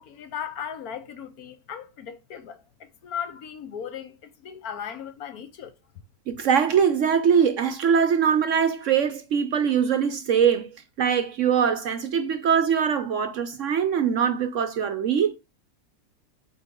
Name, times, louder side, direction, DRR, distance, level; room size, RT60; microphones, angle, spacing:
voice 1, 0.0-5.7, left 8 dB, 70° left, 1.3 m, -37 dB
voice 2, 6.3-10.7 11.0-15.4, right 7 dB, 60° right, 0.8 m, -22 dB
7.8 x 4.1 x 3.7 m
omnidirectional pair, 1.7 m